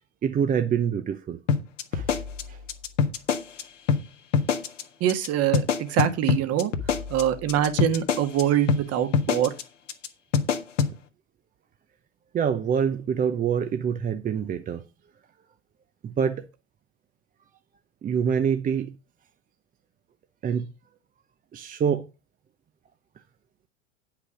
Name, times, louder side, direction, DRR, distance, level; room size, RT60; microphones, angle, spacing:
voice 1, 0.2-1.4 1.9-2.2 2.5-2.6 6.9-7.0 12.3-14.8 16.0-16.5 18.0-19.0 20.4-20.7 21.5-22.1, right 7 dB, 25° right, 0.8 m, -26 dB
sound 1, 1.5-3.6 3.9-4.0 4.3-4.8 5.1-5.3 5.5-8.4 8.7-8.8 9.1-9.6 9.9-10.1 10.3-10.9, left 6 dB, 80° left, 1.6 m, -24 dB
voice 2, 5.0-6.7 7.1-9.5, right 11 dB, 40° right, 1.7 m, -24 dB
9.7 x 5.8 x 6.2 m
hypercardioid pair, 95°, 37 cm